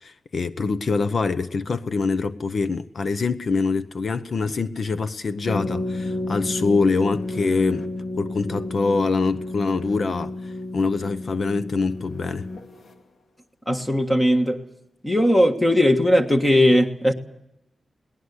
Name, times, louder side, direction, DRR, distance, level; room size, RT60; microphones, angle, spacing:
voice 1, 0.0-7.9 8.2-12.5, left 4 dB, 50° left, 0.8 m, -24 dB
sound 1, 5.5-12.9, left 2 dB, 65° left, 2.2 m, -31 dB
voice 2, 13.7-14.6 15.0-17.1, equal, 15° left, 1.5 m, -18 dB
21.0 x 19.0 x 8.3 m
wide cardioid pair, 180°, 0 cm